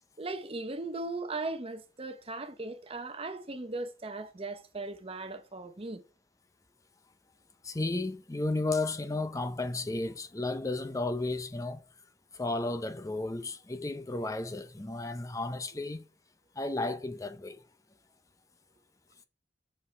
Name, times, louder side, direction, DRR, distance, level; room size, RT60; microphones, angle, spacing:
voice 1, 0.2-6.0, right 2 dB, 30° right, 0.8 m, -38 dB
voice 2, 7.6-11.8 12.3-16.0 16.6-17.6, left 2 dB, 20° left, 0.5 m, -33 dB
6.7 x 5.5 x 4.4 m
head